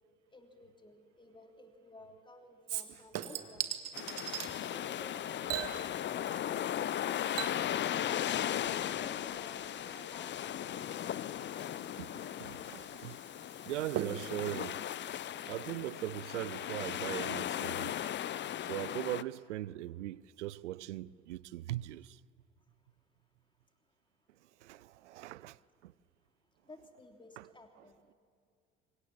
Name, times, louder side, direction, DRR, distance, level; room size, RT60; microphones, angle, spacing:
voice 1, 0.3-3.7 9.0-12.0 26.7-28.1, left 2 dB, 15° left, 3.0 m, -56 dB
Chink clink / Liquid, 2.7-4.5 5.5-6.6 6.9-15.9 16.3-16.4, right 10 dB, 45° right, 1.7 m, -43 dB
sound 1, 3.9-19.2, left 11 dB, 30° left, 0.7 m, -37 dB
voice 2, 12.0-13.2 13.7-14.8 15.5-18.0 18.6-22.2 24.6-25.9 27.4-27.5, right 15 dB, 70° right, 0.6 m, -40 dB
26.0 x 25.0 x 7.1 m
figure-of-eight pair, 55°, 37 cm